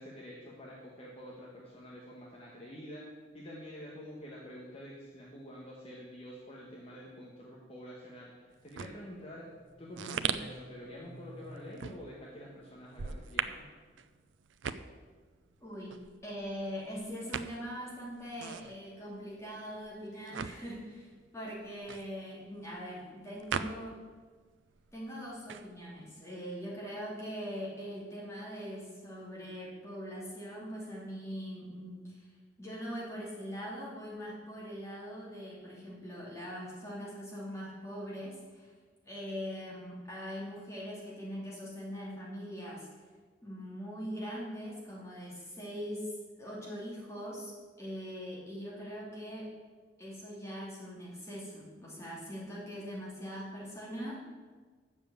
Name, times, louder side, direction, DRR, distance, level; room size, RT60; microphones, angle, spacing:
voice 1, 0.0-3.1 3.3-9.5 9.8-13.7, equal, 30° left, -3 dB, 1.2 m, -47 dB
sound 1, 8.5-24.3 24.5-26.1, right 7 dB, 85° right, 0.5 m, -40 dB
sound 2, 9.5-13.2, equal, 55° right, 1.3 m, -54 dB
voice 2, 15.6-16.0 16.2-24.0 24.9-32.3 32.6-38.7 39.0-42.9 43.4-47.5 47.8-49.5 50.0-54.2, equal, 15° left, -5 dB, 2.7 m, -42 dB
7.2 x 7.0 x 8.1 m, 1.5 s
head